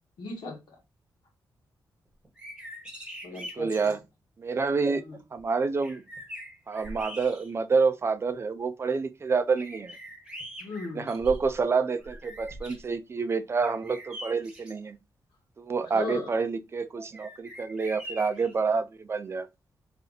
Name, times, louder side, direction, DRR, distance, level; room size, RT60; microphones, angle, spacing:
voice 1, 0.2-0.8 3.2-4.0 4.9-5.2 10.6-11.1 15.8-16.3, left 4 dB, 90° left, 1.6 m, -38 dB
sound 1, 2.2-4.0 5.4-5.5 5.8-7.8 8.3-8.4 9.6-11.6 12.0-12.9 13.6-14.8 17.1-18.5, equal, 10° right, 1.1 m, -43 dB
voice 2, 3.6-4.0 4.4-5.0 5.3-6.0 6.7-10.0 11.0-15.0 15.6-19.5, right 4 dB, 35° right, 0.5 m, -28 dB
3.3 x 2.7 x 3.9 m
wide cardioid pair, 125°, 7 cm